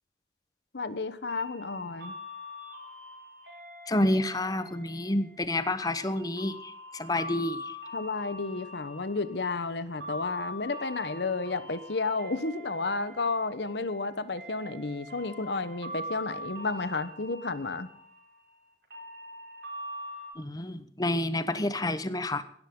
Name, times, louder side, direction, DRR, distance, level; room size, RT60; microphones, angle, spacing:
voice 1, 0.7-2.1 7.9-17.9, left 3 dB, 70° left, 13 dB, 1.1 m, -32 dB
sound 1, 1.3-20.3, left 1 dB, 70° right, 5.3 m, -43 dB
voice 2, 3.9-7.7 20.4-22.4, left 1 dB, 20° left, 12 dB, 0.9 m, -29 dB
17.0 x 13.0 x 3.8 m, 0.69 s
head